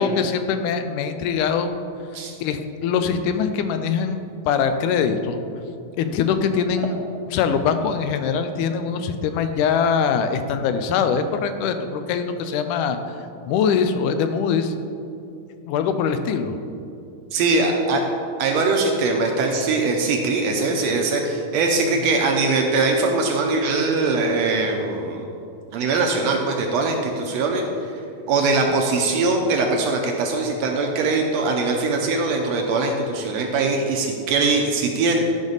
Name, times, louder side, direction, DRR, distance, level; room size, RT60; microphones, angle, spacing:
voice 1, 0.0-1.7 2.4-5.4 6.0-7.0 7.3-13.0 13.5-14.7 15.7-16.6 28.4-28.5, left 6 dB, 85° left, 8 dB, 2.1 m, -22 dB
voice 2, 17.3-18.0 18.4-25.2 25.7-27.6 28.3-35.2, right 3 dB, 75° right, 2 dB, 1.7 m, -21 dB
12.5 x 5.3 x 3.9 m, 2.5 s
omnidirectional pair, 3.6 m